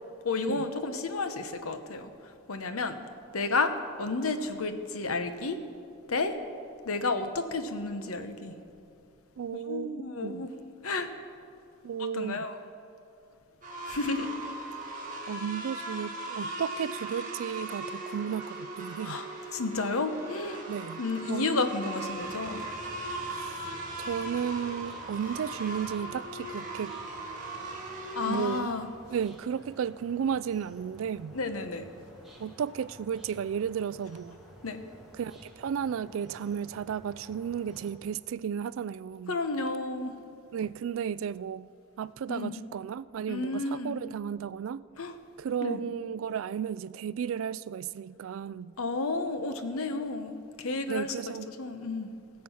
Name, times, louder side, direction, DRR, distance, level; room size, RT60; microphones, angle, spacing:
voice 1, 0.2-2.1 2.5-3.0 3.3-3.7 4.0-5.6 6.1-6.3 6.8-8.6 9.7-10.5 10.8-11.1 12.1-12.6 13.9-14.3 19.0-19.3 19.5-20.6 21.0-22.6 28.1-28.9 31.3-31.9 34.6-34.8 39.3-40.1 42.3-42.5 43.3-44.0 45.0-45.1 45.6-45.8 48.8-52.1, left 3 dB, 85° left, 0.9 m, -31 dB
voice 2, 9.4-10.5 11.8-12.4 15.3-19.2 20.7-21.0 21.3-21.7 23.3-23.6 24.0-26.9 28.2-28.8 29.1-31.4 32.4-34.4 35.1-39.4 40.5-41.7 42.0-44.9 45.4-48.8 50.9-51.5, right 8 dB, 70° right, 0.3 m, -34 dB
sound 1, 13.6-28.6, right 2 dB, 35° right, 1.8 m, -39 dB
sound 2, 22.2-37.9, equal, ahead, 1.5 m, -52 dB
19.0 x 7.6 x 5.6 m
head